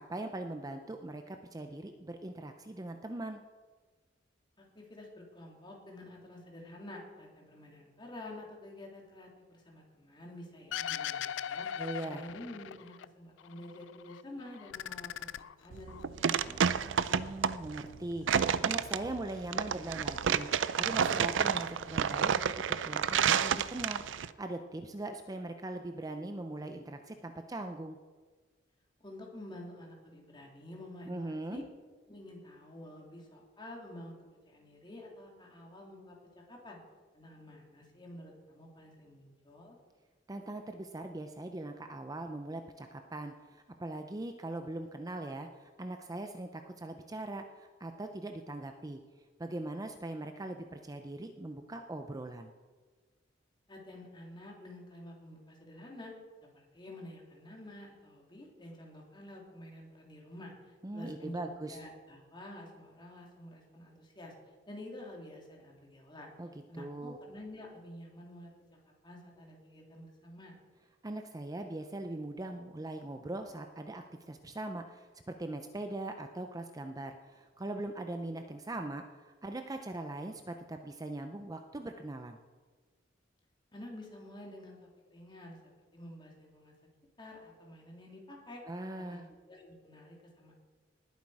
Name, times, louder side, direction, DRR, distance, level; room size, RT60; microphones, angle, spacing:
voice 1, 0.0-3.4 11.8-12.2 17.1-28.0 31.1-31.6 40.3-49.0 49.4-52.5 60.8-61.8 66.4-67.2 71.0-82.4 88.7-89.3, right 2 dB, 20° right, 6 dB, 0.6 m, -41 dB
voice 2, 4.7-11.7 12.0-16.9 29.0-31.6 32.1-34.2 34.5-36.2 36.5-36.8 37.1-39.8 53.7-56.1 56.5-66.3 66.7-68.5 69.0-70.6 83.7-86.7 87.2-88.6 89.1-89.2 89.5-90.5, left 1 dB, 25° left, -1 dB, 2.8 m, -49 dB
sound 1, 10.7-13.1 13.4-14.2 14.5-16.1, left 9 dB, 70° left, 0.4 m, -39 dB
sound 2, 15.7-24.3, right 7 dB, 75° right, 0.5 m, -30 dB
19.5 x 8.2 x 4.8 m, 1.4 s
head